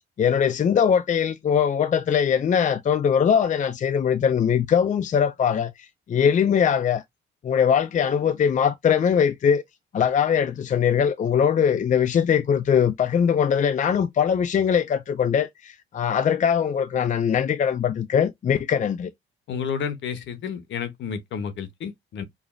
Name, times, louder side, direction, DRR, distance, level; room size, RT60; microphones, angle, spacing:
voice 1, 0.2-7.0 7.4-9.6 9.9-19.1, left 7 dB, 40° left, 0.5 m, -21 dB
voice 2, 19.5-22.2, left 7 dB, 70° left, 1.0 m, -31 dB
5.0 x 2.5 x 2.5 m
cardioid pair, 90°, 20 cm